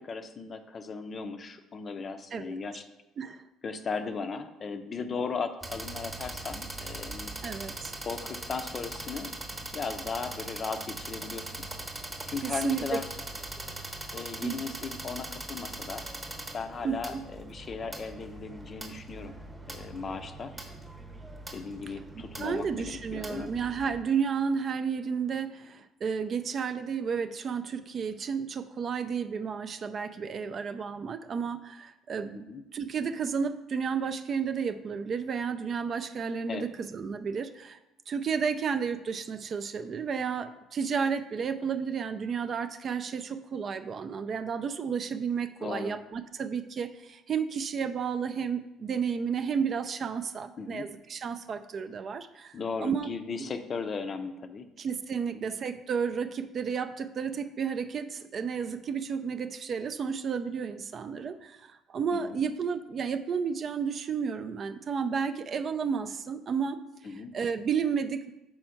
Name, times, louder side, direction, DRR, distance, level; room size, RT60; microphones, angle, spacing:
voice 1, 0.0-2.9 3.6-7.3 8.0-9.3 9.6-11.7 12.3-13.0 14.1-16.1 16.5-19.4 19.7-20.5 21.5-23.5 32.3-32.6 36.5-36.7 45.6-46.0 50.6-50.9 52.5-54.7 55.3-55.4 62.1-62.4 67.0-67.3, left 5 dB, 30° left, 8 dB, 0.5 m, -37 dB
sound 1, 5.6-24.0, right 2 dB, 15° right, 1.0 m, -41 dB
voice 2, 7.4-7.9 12.4-13.0 14.4-14.6 16.8-17.2 22.4-32.5 32.7-37.8 38.1-53.1 53.4-53.5 54.8-66.8 67.1-68.3, right 6 dB, 35° right, 10 dB, 0.4 m, -32 dB
6.2 x 4.4 x 5.7 m, 0.93 s
cardioid pair, 145°, 0 cm